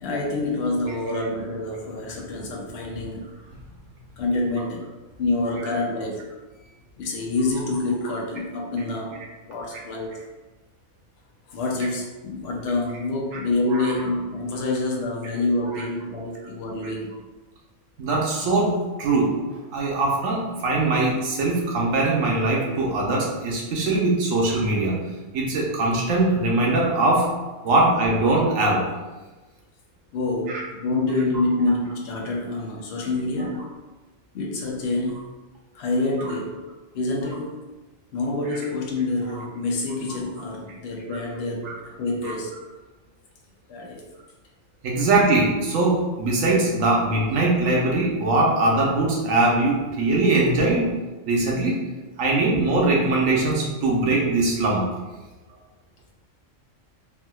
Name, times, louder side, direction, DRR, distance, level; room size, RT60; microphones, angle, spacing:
voice 1, 0.0-3.2 4.2-4.9 5.2-6.3 7.0-10.2 11.5-17.2 30.1-33.6 34.3-35.3 35.7-36.6 36.9-37.7 38.1-42.6 43.7-44.0 52.3-52.4, left 2 dB, 60° left, -1 dB, 0.8 m, -27 dB
voice 2, 13.7-14.0 15.7-15.8 18.0-19.3 19.7-25.0 25.3-28.8 30.5-30.6 41.6-41.8 42.2-42.3 44.8-50.9 51.3-51.8 52.2-54.8, right 2 dB, 85° right, -2 dB, 1.1 m, -21 dB
3.4 x 2.7 x 2.2 m, 1.2 s
omnidirectional pair, 1.3 m